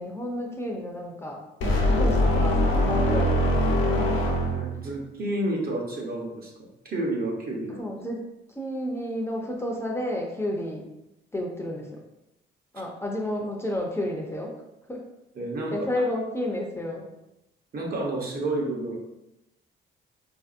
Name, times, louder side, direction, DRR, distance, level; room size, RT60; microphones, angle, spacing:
voice 1, 0.0-1.4 2.0-4.3 7.8-8.2 8.5-10.9 11.3-11.8 12.7-14.5 14.9-15.0 15.7-17.1, left 1 dB, 10° left, -1 dB, 0.6 m, -31 dB
sound 1, 1.6-4.9, equal, 75° left, 0.8 m, -22 dB
voice 2, 4.5-6.5 6.8-7.8 15.3-16.0 17.7-19.0, right 1 dB, 50° right, -1 dB, 0.9 m, -30 dB
3.9 x 2.7 x 2.5 m, 0.89 s
cardioid pair, 90°, 20 cm